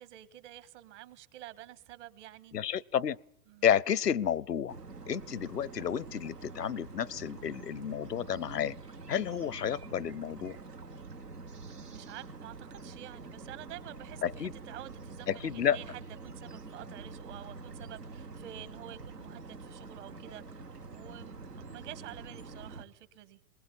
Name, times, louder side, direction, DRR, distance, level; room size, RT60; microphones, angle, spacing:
voice 1, 0.0-2.5 3.5-3.7 11.7-23.4, right 13 dB, 50° right, 14 dB, 1.7 m, -49 dB
voice 2, 2.5-3.2 3.6-4.8 5.1-8.8 9.1-10.6 14.2-14.5 15.3-15.8, left 9 dB, 85° left, 26 dB, 0.8 m, -31 dB
sound 1, 4.7-22.8, right 3 dB, 90° right, 1.6 m, -46 dB
22.5 x 20.0 x 7.0 m, 0.75 s
figure-of-eight pair, 105°, 46 cm